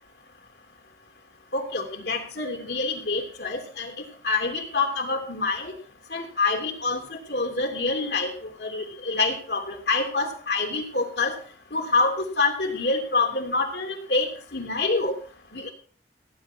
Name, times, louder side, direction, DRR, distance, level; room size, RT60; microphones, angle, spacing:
voice 1, 1.5-3.9 4.2-5.7 6.1-7.0 7.3-8.3 8.6-11.3 11.7-14.3 14.5-15.1 15.5-15.7, left 3 dB, 75° left, 3 dB, 3.1 m, -26 dB
17.5 x 9.8 x 4.6 m, 0.43 s
head